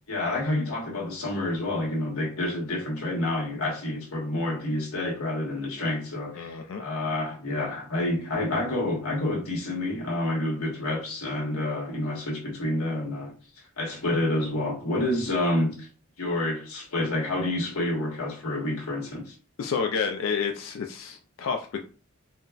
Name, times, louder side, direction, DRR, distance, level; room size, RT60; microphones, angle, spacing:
voice 1, 0.1-13.3 13.8-15.9 16.2-19.3, left 1 dB, 90° left, 1.2 m, -28 dB
voice 2, 6.4-6.8 19.6-21.8, left 6 dB, 60° left, 0.3 m, -29 dB
3.8 x 2.1 x 2.3 m
head